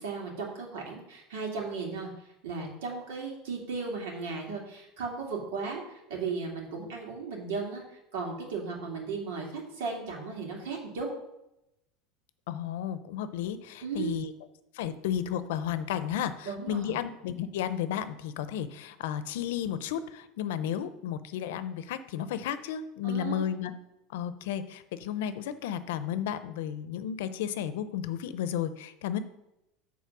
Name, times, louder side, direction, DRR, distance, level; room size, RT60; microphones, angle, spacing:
voice 1, 0.0-11.1 13.8-14.2 16.4-17.0 23.0-23.4, right 4 dB, 85° right, -1 dB, 2.7 m, -36 dB
voice 2, 12.5-14.3 14.7-23.7 24.1-29.2, left 10 dB, 80° left, 12 dB, 0.6 m, -33 dB
8.4 x 4.2 x 6.1 m, 0.88 s
supercardioid pair, 175°, 0 cm